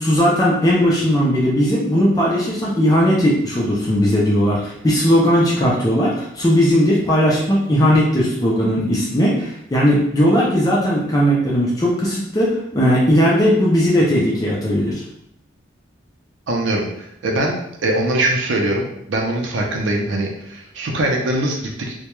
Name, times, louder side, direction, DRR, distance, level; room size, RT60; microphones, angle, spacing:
voice 1, 0.0-15.0, equal, 20° left, -5 dB, 0.4 m, -17 dB
voice 2, 16.5-21.9, right 1 dB, 70° right, 0 dB, 0.5 m, -22 dB
2.2 x 2.1 x 2.9 m, 0.76 s
head